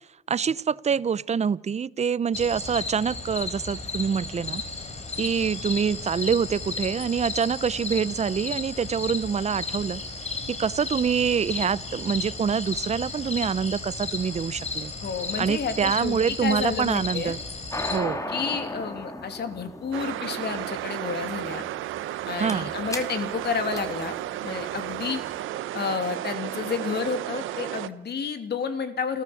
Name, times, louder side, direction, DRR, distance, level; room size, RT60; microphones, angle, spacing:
voice 1, 0.3-4.6 5.2-10.0 10.5-14.9 15.4-17.4 17.9-18.3 22.4-22.7, right 6 dB, 35° right, 0.7 m, -26 dB
sound 1, 2.3-18.0, left 3 dB, 35° left, 3.8 m, -34 dB
voice 2, 15.0-17.4 18.3-21.6 22.3-24.2 24.4-25.2 25.7-29.2, left 5 dB, 55° left, 2.8 m, -30 dB
sound 2, 17.7-25.2, left 1 dB, 15° left, 2.8 m, -36 dB
sound 3, 19.9-27.9, right 13 dB, 85° right, 1.0 m, -33 dB
28.5 x 14.0 x 7.2 m
cardioid pair, 90°, 20 cm